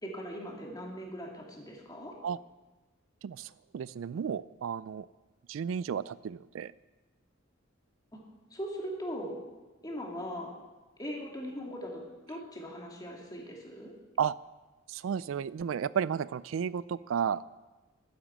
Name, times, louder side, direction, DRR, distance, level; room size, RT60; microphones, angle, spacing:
voice 1, 0.0-2.2 8.1-8.2 8.5-9.4 9.8-10.5 11.0-13.9, equal, 20° left, -1 dB, 2.7 m, -40 dB
voice 2, 3.2-5.1 5.5-6.7 14.2-14.3 14.9-17.4, right 7 dB, 75° right, 18 dB, 0.3 m, -33 dB
12.0 x 10.5 x 7.4 m, 1.2 s
head